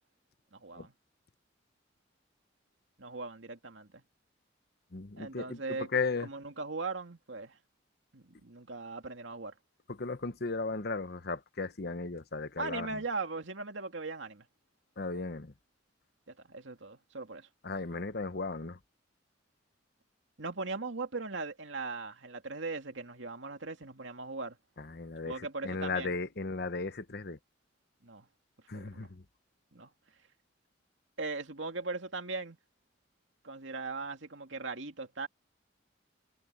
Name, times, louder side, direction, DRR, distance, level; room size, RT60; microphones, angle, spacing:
voice 1, 0.5-0.9 3.0-4.0 5.2-5.9 6.2-7.6 8.1-9.5 12.6-14.5 16.3-17.5 20.4-24.6 25.2-26.2 28.0-28.3 28.7-29.1 29.7-29.9 31.2-32.6 33.4-35.3, right 3 dB, 80° right, 2.3 m, -39 dB
voice 2, 4.9-6.3 9.9-13.0 15.0-15.5 17.6-18.8 24.8-27.4 28.7-29.2, left 4 dB, 55° left, 1.1 m, -36 dB
head